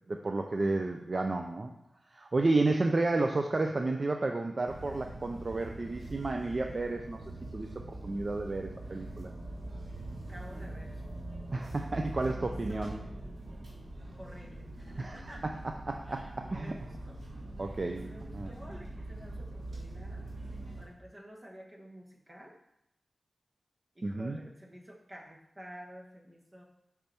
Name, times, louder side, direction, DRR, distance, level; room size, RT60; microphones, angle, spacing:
voice 1, 0.1-1.7 2.1-7.2 7.5-7.7 8.0-9.3 11.5-13.0 15.0-15.3 15.9-16.7 17.6-18.1 18.3-18.5 24.0-24.4, right 2 dB, 40° right, 4 dB, 0.4 m, -31 dB
sound 1, 4.6-20.8, right 1 dB, 80° right, 1.8 m, -43 dB
voice 2, 10.2-11.0 12.2-13.0 14.2-15.4 16.0-17.2 17.9-20.3 20.8-22.6 23.9-26.6, equal, 20° right, -1 dB, 1.3 m, -50 dB
5.8 x 5.3 x 4.4 m, 0.80 s
wide cardioid pair, 105°, 0 cm